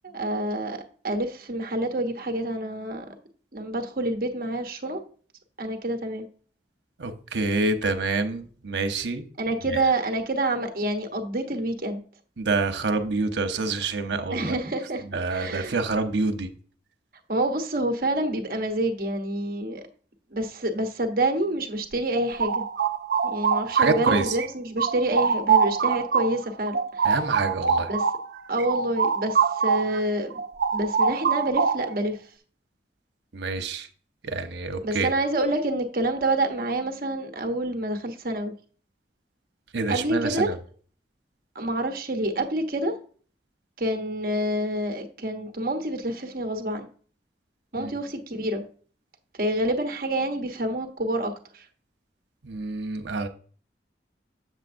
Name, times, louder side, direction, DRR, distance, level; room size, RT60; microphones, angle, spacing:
voice 1, 0.0-3.1 3.5-5.0 5.6-6.3 9.4-12.0 14.3-15.8 17.3-19.8 20.3-22.6 23.2-27.1 27.9-28.0 28.5-30.4 30.7-32.2 34.8-38.5 39.9-40.5 41.5-42.9 43.8-46.9 47.7-48.6 49.4-51.6, right 1 dB, 55° right, 1.1 m, -27 dB
voice 2, 7.0-9.2 9.7-9.8 12.4-14.6 15.1-16.5 23.7-24.4 27.0-27.9 33.3-33.9 34.2-35.1 39.7-40.6 47.8-47.9 52.4-53.3, right 3 dB, 85° right, 0.9 m, -27 dB
sound 1, 21.9-24.5 24.8-30.0 30.3-32.0, right 6 dB, 70° right, 0.4 m, -24 dB
7.9 x 7.3 x 2.6 m
head